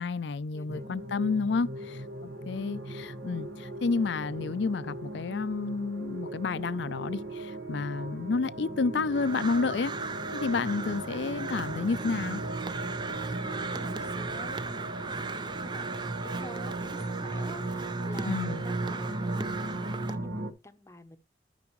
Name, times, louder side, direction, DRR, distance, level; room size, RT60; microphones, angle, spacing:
voice 1, 0.0-2.0 2.5-9.9 10.3-12.4 18.3-18.6, left 4 dB, 70° left, 0.5 m, -30 dB
voice 2, 0.5-0.9 1.8-2.0 10.2-10.4 13.2-21.2, left 1 dB, 15° left, 0.8 m, -49 dB
sound 1, 0.7-20.5, right 2 dB, 75° right, 1.4 m, -37 dB
Crow, 9.1-20.2, right 4 dB, 25° right, 0.5 m, -38 dB
13.0 x 6.1 x 3.1 m
head